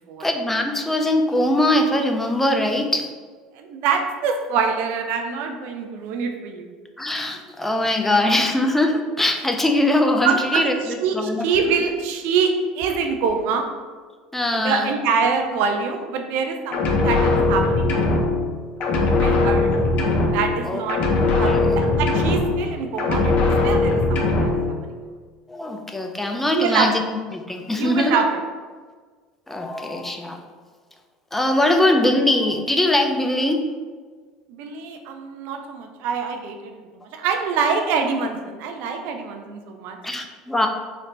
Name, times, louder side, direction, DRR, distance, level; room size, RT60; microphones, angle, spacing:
voice 1, 0.2-3.1 7.0-11.5 14.3-14.9 20.6-20.8 21.4-21.8 25.5-28.2 29.5-30.4 31.3-33.6 40.0-40.7, left 1 dB, 10° left, 3 dB, 0.4 m, -21 dB
voice 2, 3.6-6.7 10.2-13.7 14.5-18.1 19.1-19.7 20.3-21.0 21.4-23.3 23.6-24.9 26.5-26.9 27.7-28.4 34.5-36.7 37.1-40.0, right 5 dB, 65° right, 4 dB, 0.4 m, -25 dB
sound 1, 16.7-18.5 18.8-20.6 20.9-22.7 23.0-24.7, left 2 dB, 55° left, 0.7 m, -20 dB
3.2 x 2.1 x 3.9 m, 1.5 s
hypercardioid pair, 80°, 3 cm